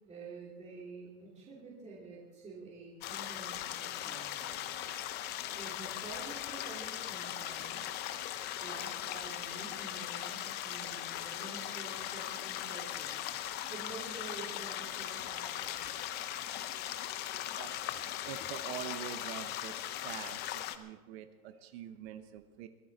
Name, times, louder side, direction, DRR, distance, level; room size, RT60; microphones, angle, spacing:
voice 1, 0.1-4.8 5.5-7.9 8.6-15.9 21.5-21.6, right 3 dB, 15° right, -5 dB, 2.8 m, -49 dB
sound 1, 3.0-20.8, left 12 dB, 25° left, 0.6 m, -39 dB
voice 2, 17.6-18.0 18.2-22.7, right 10 dB, 45° right, 10 dB, 0.9 m, -45 dB
22.5 x 13.5 x 3.9 m, 1.2 s
supercardioid pair, 150°, 44 cm